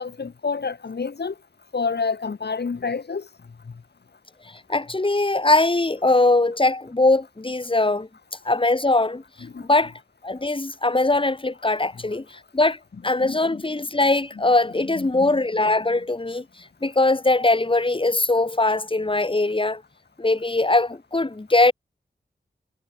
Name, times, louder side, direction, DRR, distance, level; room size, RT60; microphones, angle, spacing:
voice 1, 0.0-1.3 1.7-3.3 9.5-9.6 13.2-13.6 15.0-15.3, left 5 dB, 75° left, 3.0 m, -28 dB
voice 2, 4.7-8.1 8.5-9.2 9.6-9.9 10.2-12.8 13.0-16.4 16.8-19.8 20.2-21.7, left 2 dB, 30° left, 4.0 m, -21 dB
wide cardioid pair, 90°, 17 cm